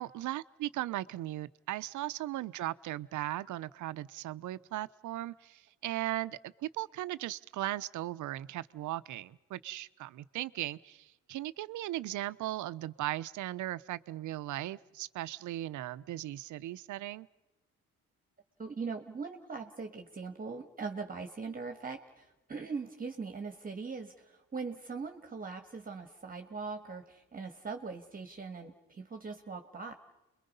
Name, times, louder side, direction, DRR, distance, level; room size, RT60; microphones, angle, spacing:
voice 1, 0.0-17.3, right 15 dB, 75° right, 15 dB, 0.7 m, -37 dB
voice 2, 18.6-30.0, right 4 dB, 30° right, 5 dB, 1.6 m, -41 dB
29.5 x 22.5 x 5.5 m, 0.99 s
cardioid pair, 90°, 30 cm